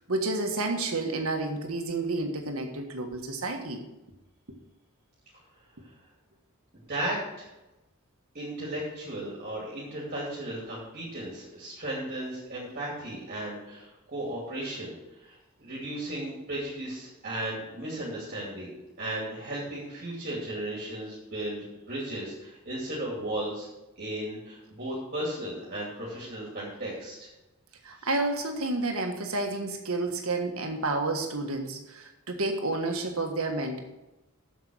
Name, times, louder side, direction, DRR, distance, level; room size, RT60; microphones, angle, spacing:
voice 1, 0.1-3.8 27.8-33.8, right 2 dB, 85° right, 4 dB, 1.5 m, -30 dB
voice 2, 6.7-7.5 8.3-23.7 24.0-27.3 28.0-28.1, right 1 dB, 45° right, -5 dB, 2.6 m, -35 dB
8.1 x 7.1 x 6.2 m, 0.99 s
head